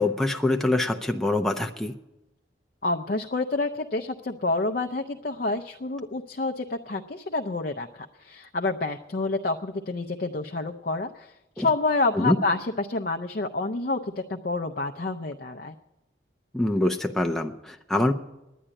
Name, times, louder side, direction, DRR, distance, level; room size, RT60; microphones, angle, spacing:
voice 1, 0.0-1.9 11.6-11.7 12.1-12.4 16.5-18.1, left 1 dB, ahead, 3 dB, 0.5 m, -24 dB
voice 2, 2.8-15.7, left 3 dB, 50° left, 4 dB, 0.5 m, -28 dB
10.0 x 10.0 x 9.7 m, 0.93 s
head